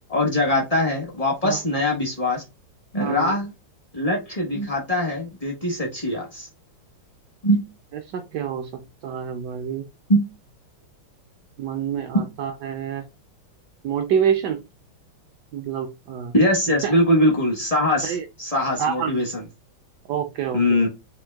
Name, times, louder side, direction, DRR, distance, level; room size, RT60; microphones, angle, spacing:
voice 1, 0.1-2.4 2.9-3.5 3.9-6.5 7.4-7.6 10.1-10.2 12.1-12.3 16.3-19.4 20.5-20.9, left 1 dB, 40° left, 0.5 m, -22 dB
voice 2, 3.0-3.4 8.1-9.8 11.6-13.0 13.8-14.6 15.5-16.3 16.8-16.9 18.0-18.3 18.8-19.1 20.1-20.9, right 8 dB, 80° right, 0.9 m, -27 dB
3.7 x 2.5 x 3.3 m
omnidirectional pair, 2.3 m